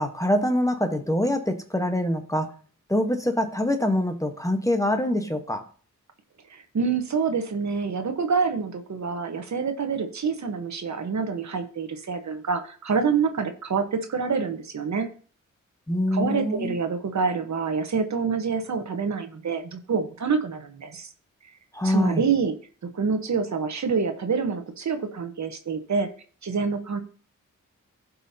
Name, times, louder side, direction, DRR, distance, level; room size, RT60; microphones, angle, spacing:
voice 1, 0.0-2.5 2.9-5.6 15.9-16.7 21.7-22.2, left 1 dB, 10° left, 6 dB, 1.1 m, -24 dB
voice 2, 6.5-15.1 16.1-21.1 21.8-22.5 22.9-26.1 26.4-27.0, right 5 dB, 60° right, 7 dB, 1.1 m, -27 dB
16.5 x 5.5 x 2.8 m, 0.42 s
wide cardioid pair, 95°, 32 cm